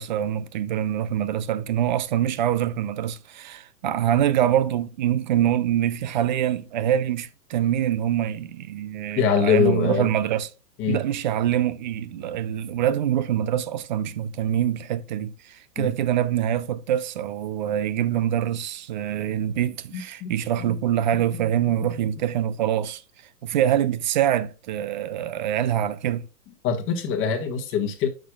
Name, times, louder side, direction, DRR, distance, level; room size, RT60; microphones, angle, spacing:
voice 1, 0.0-10.5 10.9-23.0 23.4-26.3, right 10 dB, 30° right, 0.4 m, -25 dB
voice 2, 9.1-10.1 10.8-11.0 15.8-15.9 19.9-20.3 20.6-20.7 21.8-21.9 26.6-28.1, left 7 dB, 25° left, 1.6 m, -23 dB
8.2 x 6.5 x 2.4 m
hypercardioid pair, 140°, 47 cm